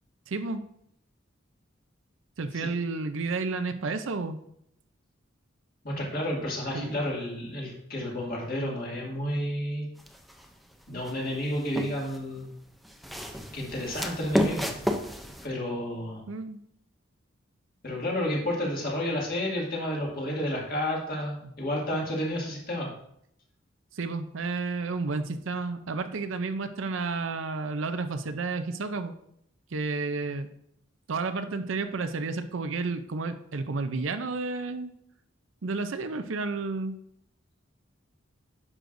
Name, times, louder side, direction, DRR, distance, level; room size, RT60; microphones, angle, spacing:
voice 1, 0.3-0.6 2.4-4.4 6.7-6.9 16.3-16.6 23.9-29.1 29.7-30.5 31.1-34.9 35.6-37.0, right 3 dB, 75° right, 9 dB, 0.6 m, -31 dB
voice 2, 5.8-9.9 10.9-12.5 13.5-14.8 15.4-16.2 17.8-22.9, left 1 dB, 50° left, -2 dB, 2.1 m, -31 dB
sound 1, 10.0-10.4 11.0-12.2 12.8-15.5, equal, ahead, 0.5 m, -31 dB
9.8 x 6.3 x 2.6 m, 0.72 s
head